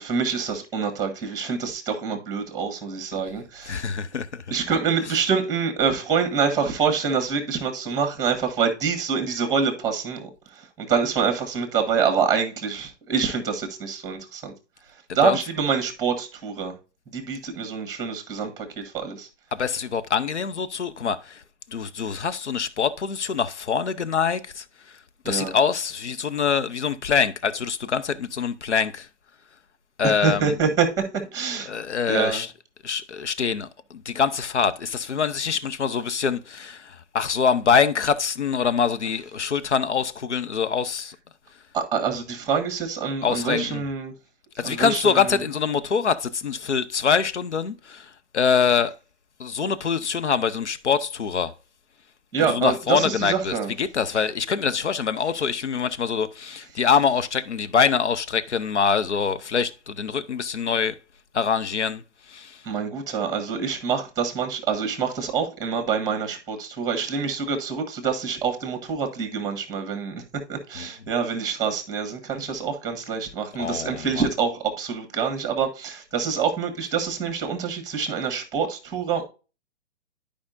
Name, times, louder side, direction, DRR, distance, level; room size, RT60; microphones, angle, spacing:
voice 1, 0.0-3.9 4.5-10.3 10.8-14.5 15.1-16.7 17.1-19.3 25.2-25.5 30.0-31.0 31.3-31.7 32.1-32.4 41.7-44.1 44.6-45.4 52.3-53.7 62.6-70.2 70.5-79.2, right 6 dB, 10° right, 1.5 m, -26 dB
voice 2, 3.6-4.4 5.0-5.3 15.1-15.4 19.5-21.4 21.7-24.6 25.3-29.1 30.0-30.6 31.5-32.5 32.8-41.2 43.2-43.9 44.6-48.9 49.4-51.5 52.4-61.0 61.3-62.0 62.3-62.6 70.8-70.9 73.6-74.3, left 6 dB, 75° left, 0.8 m, -24 dB
11.5 x 5.1 x 2.6 m
figure-of-eight pair, 125°, 35 cm